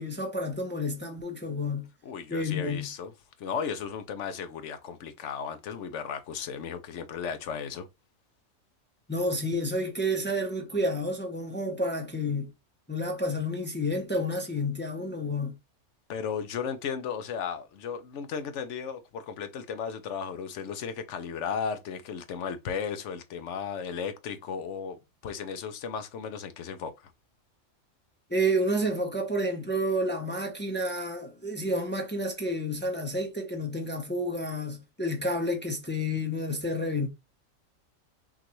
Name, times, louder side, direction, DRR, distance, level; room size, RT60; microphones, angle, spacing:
voice 1, 0.0-1.9 2.3-2.9 9.1-12.5 12.9-15.5 28.3-37.1, equal, 10° left, 0.6 m, -30 dB
voice 2, 2.0-3.1 3.4-7.9 16.1-27.1, left 6 dB, 70° left, 0.9 m, -35 dB
5.8 x 2.5 x 2.9 m
omnidirectional pair, 1.3 m